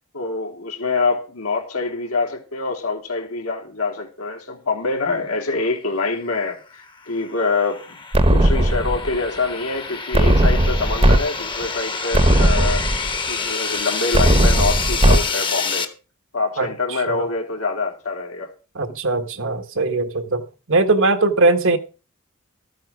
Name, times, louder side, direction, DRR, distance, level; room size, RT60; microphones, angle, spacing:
voice 1, 0.1-8.0 8.3-12.8 13.3-15.9 16.3-18.5 21.6-21.8, left 3 dB, 75° left, 3.1 m, -25 dB
sound 1, 6.9-15.9, left 5 dB, 25° left, 1.2 m, -28 dB
sound 2, 8.1-9.2 10.1-11.2 11.6-11.7 12.1-13.2 14.1-15.2, right 1 dB, 30° right, 1.1 m, -16 dB
voice 2, 18.8-20.4 20.7-21.8, right 3 dB, 65° right, 1.3 m, -20 dB
13.5 x 8.9 x 4.9 m
head